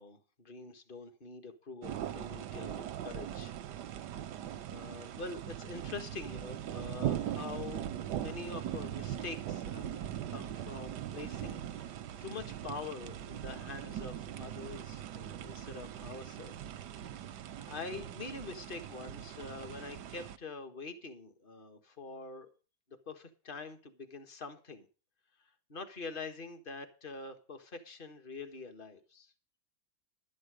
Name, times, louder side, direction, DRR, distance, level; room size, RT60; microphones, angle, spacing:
voice 1, 0.0-3.5 3.8-16.5 17.1-17.2 17.6-22.5 23.1-24.8 25.7-29.3, left 4 dB, 30° left, 7 dB, 1.7 m, -45 dB
sound 1, 1.8-20.4, right 11 dB, 85° right, 1.4 m, -40 dB
12.0 x 9.6 x 5.0 m, 0.35 s
omnidirectional pair, 1.8 m